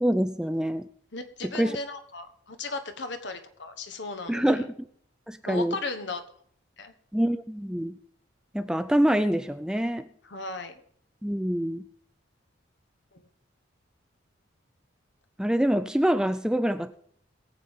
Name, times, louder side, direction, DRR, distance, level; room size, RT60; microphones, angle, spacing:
voice 1, 0.0-0.9 1.4-1.8 4.3-4.7 5.3-5.8 7.1-8.0 8.5-10.1 11.2-11.8 15.4-16.9, equal, 5° right, 10 dB, 0.4 m, -25 dB
voice 2, 1.1-4.7 5.4-6.2 6.8-6.9 10.2-10.7, left 3 dB, 65° left, 8 dB, 1.3 m, -36 dB
21.5 x 8.2 x 3.7 m, 0.64 s
head